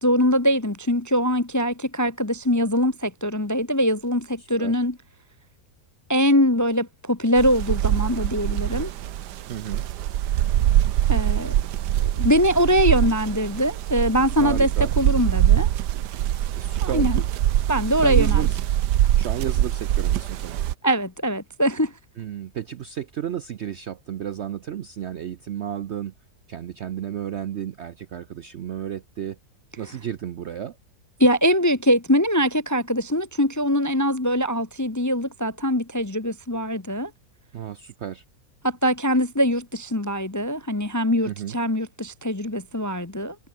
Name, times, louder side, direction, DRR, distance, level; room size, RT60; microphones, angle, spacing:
voice 1, 0.0-4.9 6.1-8.9 11.1-11.5 12.0-14.7 15.0-15.7 16.8-17.2 17.7-18.4 20.8-21.9 31.2-37.1 38.6-43.4, equal, 15° left, 0.6 m, -22 dB
voice 2, 4.4-4.8 9.5-9.8 14.4-14.9 16.6-17.1 18.0-18.6 19.2-20.6 22.2-26.1 26.5-29.4 29.8-30.8 37.5-38.2 41.2-41.6, right 10 dB, 60° right, 0.7 m, -32 dB
sound 1, 7.4-20.7, right 12 dB, 85° right, 1.4 m, -23 dB
omnidirectional pair, 1.8 m